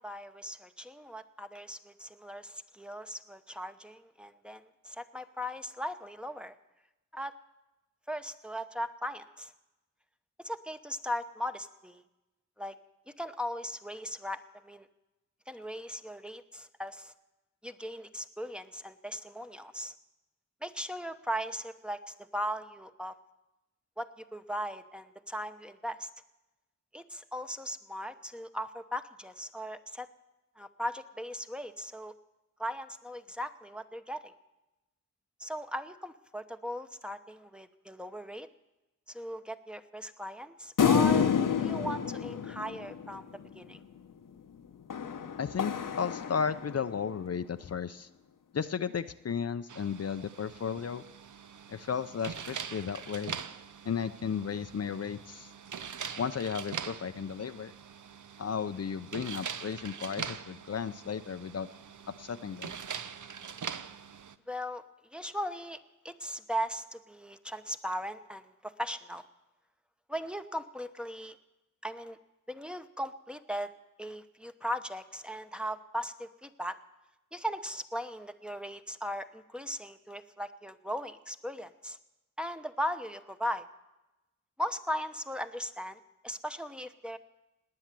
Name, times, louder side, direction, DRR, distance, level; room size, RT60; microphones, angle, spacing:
voice 1, 0.0-6.5 7.1-7.3 8.1-9.5 10.4-12.0 12.6-12.8 13.2-14.9 15.5-17.1 17.6-19.9 20.6-23.1 24.0-26.1 26.9-30.1 30.6-32.1 32.6-34.3 35.4-38.5 39.1-43.8 64.5-64.8 65.1-65.8 66.0-69.3 70.1-71.4 71.8-72.2 72.5-73.7 74.0-76.8 77.3-82.0 82.4-83.6 84.6-87.2, equal, 5° right, 7 dB, 0.9 m, -38 dB
sound 1, 40.8-43.5 44.9-47.0, left 7 dB, 80° left, 1.0 m, -29 dB
voice 2, 45.4-48.1 48.5-51.0 51.7-53.4 53.8-55.5 56.2-57.7 58.4-61.7 62.1-62.8, left 6 dB, 50° left, 11 dB, 0.6 m, -34 dB
sound 2, 49.7-64.4, right 7 dB, 70° right, 0.7 m, -43 dB
18.5 x 9.7 x 7.5 m, 1.0 s
wide cardioid pair, 75°, 31 cm